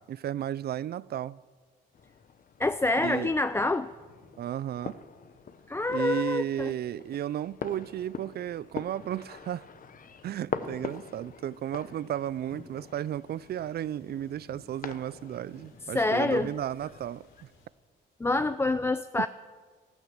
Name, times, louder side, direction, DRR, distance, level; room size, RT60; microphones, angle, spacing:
voice 1, 0.0-1.4 3.0-3.3 4.4-5.0 5.9-9.7 10.2-17.3 19.2-19.3, right 11 dB, 55° right, 0.4 m, -34 dB
sound 1, 1.9-17.4, left 6 dB, 45° left, 0.9 m, -44 dB
voice 2, 2.6-3.9 5.7-6.7 15.9-16.5 18.2-19.3, left 2 dB, 10° left, 0.4 m, -26 dB
sound 2, 3.7-17.7, left 3 dB, 70° left, 4.0 m, -56 dB
14.5 x 12.5 x 7.6 m
cardioid pair, 90°, 20 cm